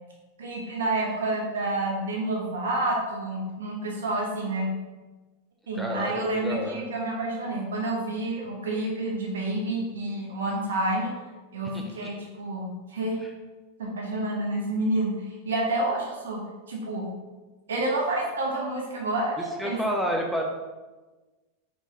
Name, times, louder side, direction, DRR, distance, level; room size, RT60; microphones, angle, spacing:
voice 1, 0.4-4.7 5.7-11.1 11.5-13.2 13.8-17.1 17.7-19.8, right 2 dB, 85° right, -2 dB, 1.1 m, -29 dB
voice 2, 5.7-6.1 6.4-6.8 11.7-11.8 19.6-20.4, equal, ahead, 0 dB, 0.7 m, -29 dB
4.4 x 3.5 x 3.1 m, 1.2 s
hypercardioid pair, 105°, 0 cm